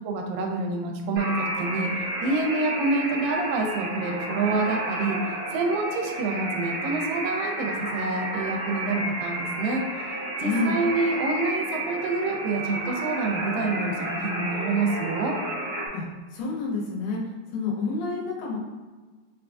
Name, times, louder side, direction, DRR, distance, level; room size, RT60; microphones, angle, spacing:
voice 1, 0.0-1.9 2.2-5.2 5.5-9.8 10.4-15.4, right 3 dB, 90° right, 2 dB, 2.3 m, -27 dB
sound 1, 1.2-15.9, right 1 dB, 60° right, 1.4 m, -31 dB
voice 2, 10.4-10.7 15.9-16.0 16.3-17.2 17.5-18.6, left 3 dB, 90° left, -3 dB, 2.5 m, -28 dB
5.4 x 2.3 x 2.5 m, 1.3 s
omnidirectional pair, 4.0 m